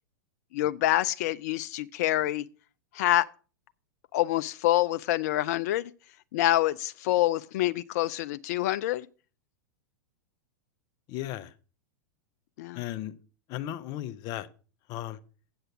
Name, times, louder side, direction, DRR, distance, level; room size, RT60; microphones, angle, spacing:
voice 1, 0.5-2.5 2.9-3.3 4.1-5.9 6.3-9.1 12.6-12.8, left 14 dB, 60° left, 0.4 m, -26 dB
voice 2, 11.1-11.5 12.7-13.1 13.5-14.5 14.9-15.2, left 13 dB, 40° left, 0.8 m, -35 dB
7.9 x 7.7 x 5.9 m
hypercardioid pair, 105°, 10 cm